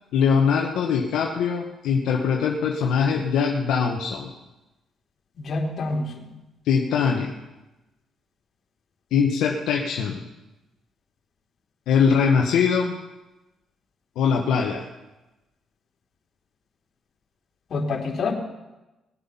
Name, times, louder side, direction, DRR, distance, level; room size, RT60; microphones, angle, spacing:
voice 1, 0.1-4.3 6.6-7.3 9.1-10.2 11.9-12.9 14.2-14.9, left 6 dB, 85° left, 0 dB, 1.2 m, -22 dB
voice 2, 5.4-6.1 17.7-18.3, left 3 dB, 55° left, 0 dB, 3.1 m, -26 dB
19.5 x 8.0 x 5.6 m, 1.0 s
cardioid pair, 90°, 0 cm